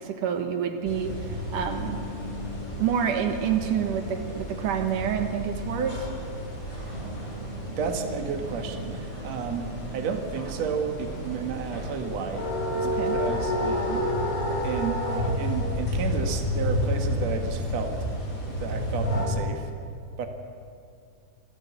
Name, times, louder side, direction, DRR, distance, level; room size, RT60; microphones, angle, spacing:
voice 1, 0.0-2.0 2.8-6.1 12.8-13.1, right 8 dB, 90° right, 6 dB, 3.1 m, -28 dB
sound 1, 0.9-19.3, left 1 dB, 25° left, 5.9 m, -31 dB
Growling, 6.9-14.6, right 2 dB, 30° right, 1.0 m, -44 dB
voice 2, 7.8-14.0 14.6-18.0 18.6-19.7 20.2-20.3, right 6 dB, 60° right, 5 dB, 2.7 m, -32 dB
26.5 x 17.0 x 8.3 m, 2.4 s
omnidirectional pair, 3.5 m